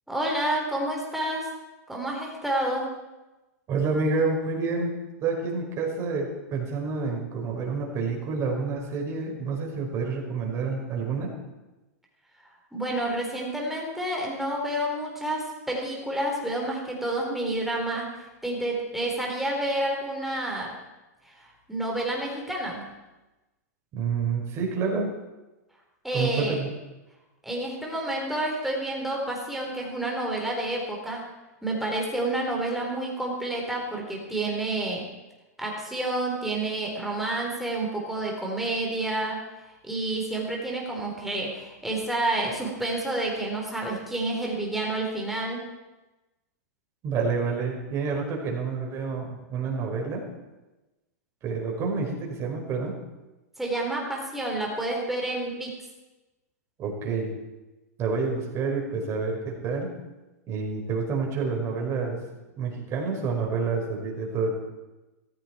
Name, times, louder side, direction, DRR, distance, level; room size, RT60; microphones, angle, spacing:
voice 1, 0.1-1.5 1.9-2.9 12.7-20.7 21.4-22.9 26.0-26.6 27.4-31.3 31.6-35.0 35.6-39.4 39.8-45.6 53.6-55.7, right 1 dB, ahead, -2 dB, 4.4 m, -29 dB
voice 2, 3.7-4.9 5.2-11.3 23.9-25.1 26.1-26.7 47.0-50.2 51.4-53.0 56.8-57.3 58.0-59.9 60.5-62.2 62.6-64.5, right 4 dB, 30° right, 0 dB, 5.0 m, -28 dB
16.0 x 15.0 x 4.6 m, 1.1 s
hypercardioid pair, 130°, 9 cm